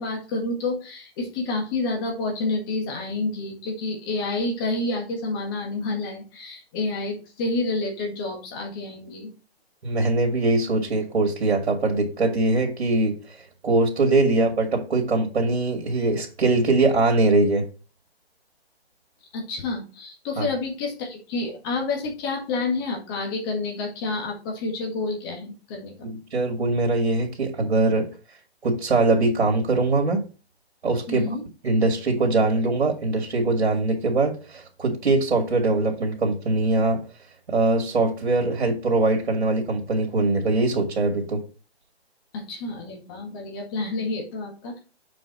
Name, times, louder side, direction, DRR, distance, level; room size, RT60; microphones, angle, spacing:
voice 1, 0.0-9.3 14.2-14.3 19.3-26.1 31.1-31.4 42.3-44.8, left 3 dB, 20° left, 1.7 m, -29 dB
voice 2, 9.8-13.2 13.6-17.7 20.4-20.5 26.0-28.1 28.6-30.2 30.8-31.3 31.6-37.0 37.5-41.4, right 2 dB, 90° right, 2.3 m, -22 dB
7.0 x 4.8 x 4.2 m
hypercardioid pair, 165°, 32 cm